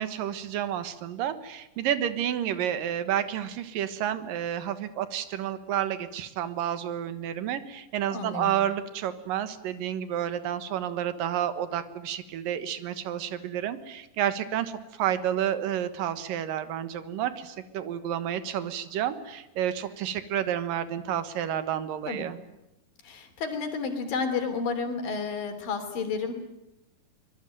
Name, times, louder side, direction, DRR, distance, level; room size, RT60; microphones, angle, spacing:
voice 1, 0.0-22.4, right 10 dB, 85° right, 12 dB, 3.1 m, -30 dB
voice 2, 8.1-8.5 22.1-22.3 23.0-26.3, left 5 dB, 85° left, 6 dB, 4.9 m, -31 dB
24.5 x 20.5 x 9.1 m, 0.91 s
omnidirectional pair, 3.9 m